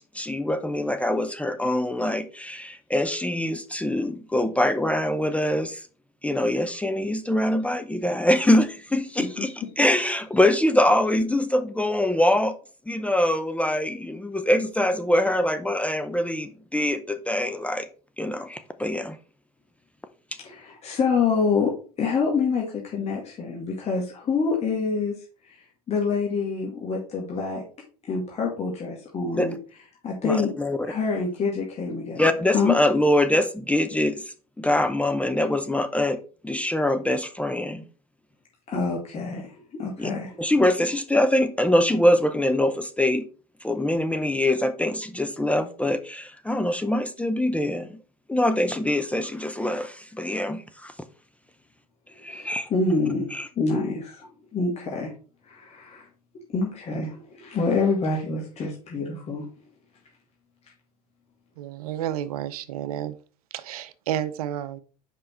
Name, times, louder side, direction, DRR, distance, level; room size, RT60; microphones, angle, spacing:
voice 1, 0.1-5.8 6.2-12.6 12.9-17.9 18.2-19.2 29.3-29.5 30.2-30.8 32.2-34.2 34.6-36.2 36.4-37.8 40.0-40.1 40.4-43.3 43.6-48.0 48.3-50.9 52.2-52.7 53.3-53.5, left 1 dB, 5° left, 0.6 m, -24 dB
voice 2, 20.4-21.7 22.0-25.1 25.4-27.6 28.1-29.6 30.0-30.5 30.9-32.2 32.5-32.7 38.7-40.4 52.3-53.3 53.6-54.3 54.5-55.1 55.5-56.1 56.5-59.4, left 4 dB, 35° left, 2.0 m, -26 dB
voice 3, 61.6-63.2 63.5-64.8, right 11 dB, 70° right, 0.6 m, -31 dB
5.4 x 5.2 x 4.4 m
hypercardioid pair, 75°, 19 cm